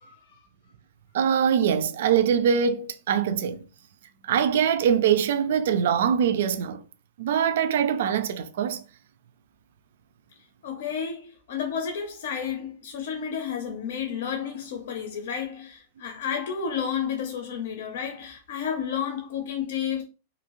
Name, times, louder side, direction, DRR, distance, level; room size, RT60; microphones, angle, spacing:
voice 1, 1.1-3.7 4.2-6.8 7.2-8.8, right 8 dB, 65° right, 0.3 m, -23 dB
voice 2, 10.6-20.0, left 7 dB, 65° left, 0.6 m, -31 dB
2.6 x 2.5 x 3.0 m
supercardioid pair, 165°, 0 cm